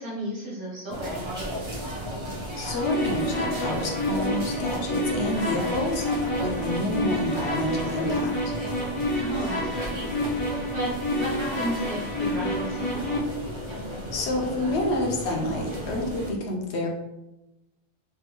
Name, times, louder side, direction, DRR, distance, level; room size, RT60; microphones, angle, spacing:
voice 1, 0.0-1.6 9.2-13.1, right 1 dB, 50° right, -5 dB, 1.2 m, -34 dB
sound 1, 0.9-16.3, equal, 30° right, 0.6 m, -34 dB
voice 2, 2.6-6.1 6.4-8.5 14.1-16.9, left 1 dB, 70° left, 1 dB, 0.9 m, -28 dB
sound 2, 2.8-13.2, left 1 dB, 45° left, 0.4 m, -29 dB
3.4 x 2.3 x 2.8 m, 0.95 s
omnidirectional pair, 1.2 m